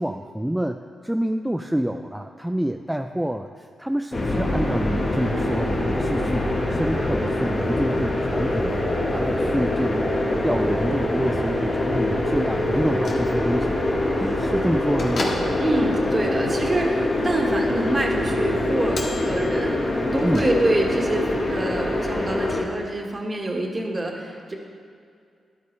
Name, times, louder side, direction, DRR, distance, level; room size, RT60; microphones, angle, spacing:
voice 1, 0.0-8.9 9.1-10.2 10.4-13.8 14.1-15.4 20.2-20.5, right 1 dB, 5° right, 5 dB, 0.4 m, -27 dB
sound 1, 4.1-22.6, left 1 dB, 40° left, 1.4 m, -24 dB
sound 2, 4.3-16.6, right 2 dB, 70° right, 1.2 m, -37 dB
Bell / Microwave oven, 12.8-21.0, left 2 dB, 65° left, 1.7 m, -38 dB
voice 2, 15.6-19.8 20.1-24.6, right 1 dB, 30° right, 0 dB, 1.6 m, -26 dB
13.5 x 10.5 x 3.2 m, 2.3 s
cardioid pair, 75°, 0 cm